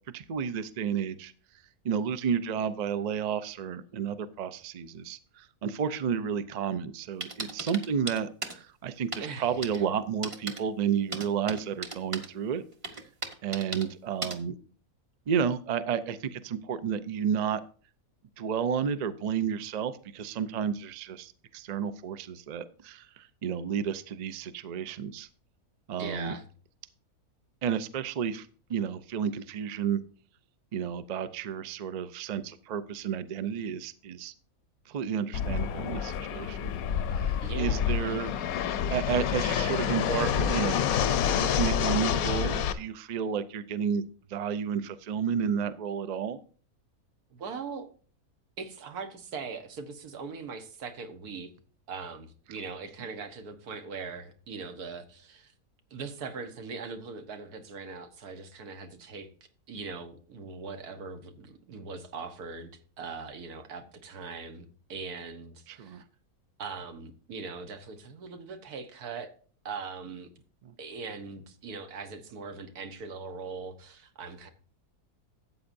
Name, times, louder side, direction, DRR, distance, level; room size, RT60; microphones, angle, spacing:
voice 1, 0.1-1.3 1.8-12.6 13.4-14.5 15.3-17.6 18.4-25.3 25.9-26.4 27.6-30.0 30.7-34.3 34.9-36.7 37.1-38.3 38.9-40.8 41.3-44.0 44.3-46.4 65.7-66.0 70.6-70.7, right 7 dB, 60° right, 12 dB, 0.4 m, -31 dB
sound 1, 7.2-8.6 9.1-9.2 9.6-9.8 10.2-10.6 11.1-12.3 12.8-13.8 14.2-14.4, right 3 dB, 25° right, 0.9 m, -35 dB
voice 2, 9.2-9.8 26.0-26.4 37.4-37.8 47.3-47.9 48.6-51.5 51.9-55.5 55.9-59.3 59.7-66.0 66.6-69.3 69.6-70.3 70.8-74.5, right 4 dB, 85° right, 8 dB, 1.6 m, -40 dB
Fixed-wing aircraft airplane, 35.3-42.7, left 8 dB, 75° left, 1.1 m, -28 dB
13.0 x 8.4 x 2.6 m, 0.42 s
omnidirectional pair, 1.6 m